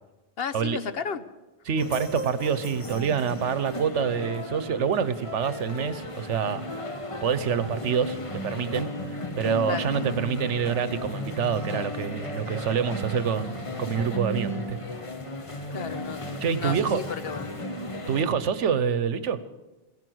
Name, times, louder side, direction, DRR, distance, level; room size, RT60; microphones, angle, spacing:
voice 1, 0.4-1.2 4.0-4.3 9.7-9.9 15.7-16.2 16.5-17.5, left 6 dB, 60° left, 12 dB, 1.0 m, -33 dB
voice 2, 1.7-6.6 7.2-8.9 9.4-14.8 16.4-17.0 18.1-19.4, right 7 dB, 85° right, 14 dB, 1.2 m, -26 dB
sound 1, 1.8-18.2, left 1 dB, 30° left, 1.2 m, -35 dB
16.0 x 11.0 x 7.8 m, 1.1 s
omnidirectional pair, 1.2 m